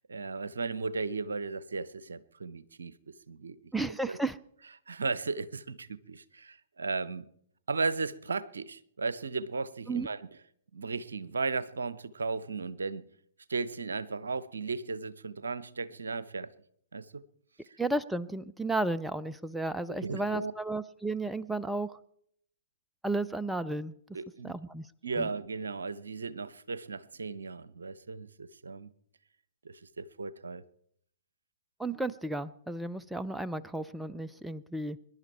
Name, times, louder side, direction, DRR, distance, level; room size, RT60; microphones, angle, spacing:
voice 1, 0.0-3.6 3.8-4.2 4.9-7.2 7.7-10.3 10.7-13.0 13.5-16.5 16.9-17.2 20.0-20.5 24.1-24.6 25.0-28.9 29.6-30.6, right 4 dB, 70° right, 0.8 m, -35 dB
voice 2, 3.7-4.4 9.9-10.1 17.8-22.0 23.0-23.9 24.4-24.9 25.1-25.3 31.8-35.0, right 2 dB, 5° right, 0.5 m, -33 dB
25.0 x 11.0 x 4.4 m
figure-of-eight pair, 115°, 0 cm